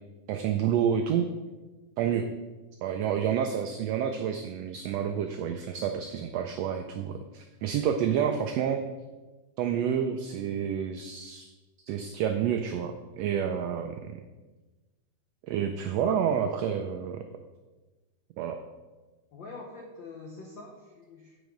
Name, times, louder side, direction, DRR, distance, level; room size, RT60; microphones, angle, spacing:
voice 1, 0.3-1.3 2.0-2.3 2.8-8.8 9.6-11.4 11.9-14.2 15.4-17.2 18.4-18.6, right 8 dB, 90° right, 6 dB, 1.4 m, -29 dB
voice 2, 19.3-21.4, left 3 dB, 90° left, 0 dB, 1.0 m, -44 dB
8.8 x 4.8 x 5.2 m, 1.2 s
omnidirectional pair, 3.5 m